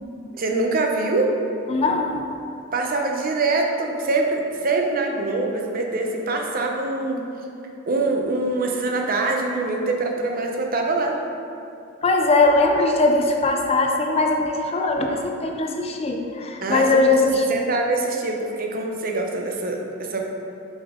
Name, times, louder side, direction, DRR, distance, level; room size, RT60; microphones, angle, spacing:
voice 1, 0.3-1.3 2.7-7.2 7.9-11.2 16.6-16.8 17.5-20.2, right 3 dB, 45° right, 1 dB, 0.8 m, -24 dB
voice 2, 1.7-2.2 12.0-17.6, left 2 dB, 30° left, 2 dB, 0.5 m, -20 dB
7.3 x 5.1 x 3.7 m, 2.7 s
head